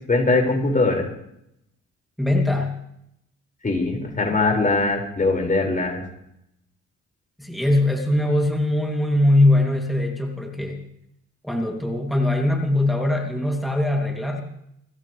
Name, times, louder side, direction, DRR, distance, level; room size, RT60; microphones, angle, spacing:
voice 1, 0.1-1.1 3.6-6.0, left 3 dB, 25° left, 1 dB, 5.5 m, -21 dB
voice 2, 2.2-2.7 7.4-10.8 11.4-14.4, left 1 dB, ahead, 1 dB, 2.7 m, -21 dB
27.0 x 13.5 x 3.3 m, 0.77 s
cardioid pair, 90°, 30 cm